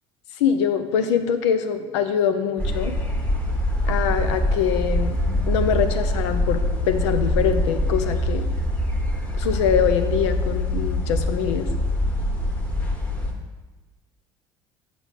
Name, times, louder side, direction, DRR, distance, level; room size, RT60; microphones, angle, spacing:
voice 1, 0.4-3.0 3.8-5.2 5.5-8.5 9.4-11.7, left 8 dB, 90° left, 8 dB, 0.5 m, -23 dB
sound 1, 2.6-13.3, left 1 dB, 10° left, 1.1 m, -24 dB
7.3 x 5.1 x 3.4 m, 1.3 s
supercardioid pair, 80°, 15 cm